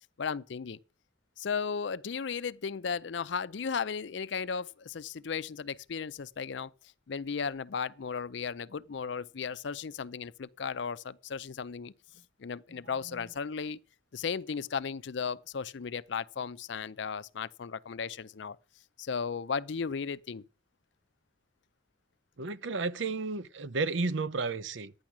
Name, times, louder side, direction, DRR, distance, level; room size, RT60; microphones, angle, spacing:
voice 1, 0.2-0.8 1.4-6.7 7.1-11.9 12.4-13.8 14.1-18.6 19.0-20.4, left 6 dB, 65° left, 0.5 m, -35 dB
voice 2, 22.4-24.9, right 3 dB, 75° right, 0.7 m, -32 dB
12.0 x 9.6 x 6.0 m
head